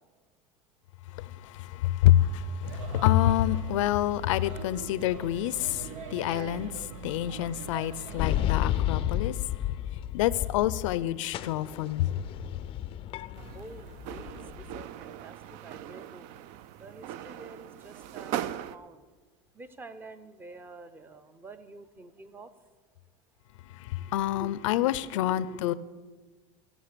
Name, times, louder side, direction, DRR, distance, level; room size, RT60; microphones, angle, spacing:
voice 1, 1.2-9.5 10.1-12.2 23.7-25.7, left 13 dB, 90° left, 0.6 m, -27 dB
Male speech man speaking / Child speech kid speaking / Chatter, 2.6-8.6, right 5 dB, 90° right, 0.9 m, -41 dB
voice 2, 4.1-5.2 6.8-8.2 13.5-16.3 16.8-18.3 18.7-19.0 19.5-22.5 24.0-25.7, right 2 dB, 15° right, 0.6 m, -49 dB
sound 1, 8.2-11.0 11.3-14.8, left 12 dB, 35° left, 0.5 m, -32 dB
sound 2, 13.4-18.8, right 11 dB, 55° right, 0.5 m, -39 dB
16.0 x 6.4 x 6.8 m
supercardioid pair, 145°, 16 cm